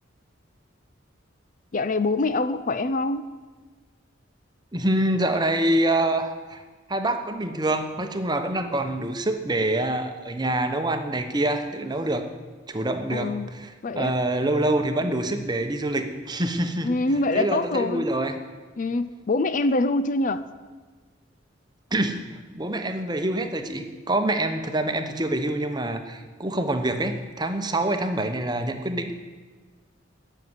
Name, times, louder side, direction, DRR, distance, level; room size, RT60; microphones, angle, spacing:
voice 1, 1.7-3.2 13.1-13.5 13.8-14.2 16.8-18.1 18.8-20.4, left 2 dB, 40° left, 12 dB, 0.5 m, -24 dB
voice 2, 4.7-6.6 6.9-12.2 12.7-16.9 17.3-18.4 21.9-22.2 22.5-29.1, right 1 dB, 20° right, 7 dB, 0.9 m, -26 dB
13.5 x 6.7 x 9.6 m, 1.4 s
head